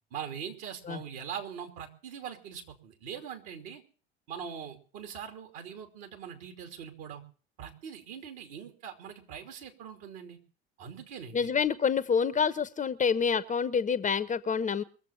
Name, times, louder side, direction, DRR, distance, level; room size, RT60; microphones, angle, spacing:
voice 1, 0.1-3.8 4.3-7.2 7.6-10.4 10.8-11.5, right 8 dB, 60° right, 4 dB, 3.0 m, -42 dB
voice 2, 11.3-14.8, left 6 dB, 25° left, 15 dB, 0.9 m, -27 dB
22.5 x 7.5 x 7.0 m, 0.41 s
figure-of-eight pair, 65°, 30 cm